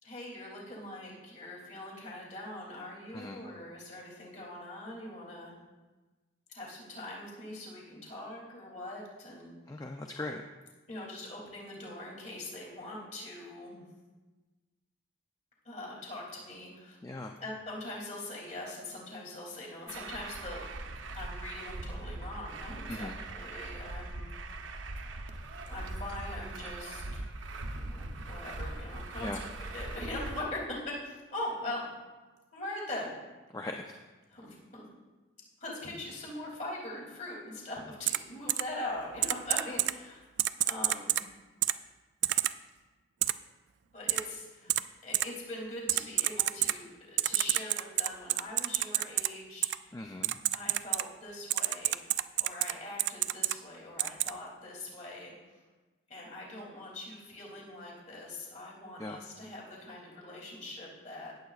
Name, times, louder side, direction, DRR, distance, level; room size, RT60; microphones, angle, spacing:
voice 1, 0.0-5.5 6.5-9.5 10.9-13.9 15.6-17.0 17.4-20.6 21.1-24.3 25.7-27.2 27.8-29.3 29.6-30.8 31.0-31.8 32.5-33.2 34.3-34.8 35.6-40.2 40.6-41.2 43.9-44.7 45.0-49.7 50.5-55.3 56.1-61.3, left 1 dB, 40° left, -3 dB, 2.8 m, -42 dB
voice 2, 9.7-10.4 17.0-17.3 22.9-23.2 29.2-29.4 33.5-34.0 49.9-50.4 59.0-59.2, left 2 dB, 20° left, 3 dB, 0.4 m, -39 dB
Truck, 19.9-30.4, right 2 dB, 80° right, 0.8 m, -41 dB
Typing, 38.1-38.2 38.5-38.6 39.2-39.9 40.4-41.2 41.6-41.7 42.2-42.5 43.2-43.3 44.1-44.2 44.7-44.8 45.1-45.2 45.9-46.7 47.2-49.3 49.6-49.8 50.2-51.0 51.5-52.7 53.0-53.5 54.0-54.3, right 15 dB, 65° right, 0.3 m, -28 dB
17.5 x 7.7 x 2.4 m, 1.2 s
head